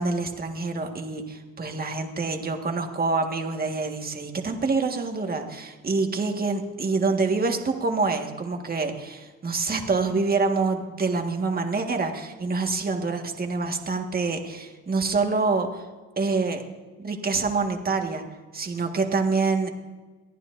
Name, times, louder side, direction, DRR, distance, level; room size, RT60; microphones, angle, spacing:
voice 1, 0.0-15.9 16.2-16.6 17.0-18.2 18.5-19.7, right 4 dB, 30° right, 3 dB, 1.7 m, -26 dB
23.0 x 14.5 x 2.6 m, 1.3 s
cardioid pair, 90°, 30 cm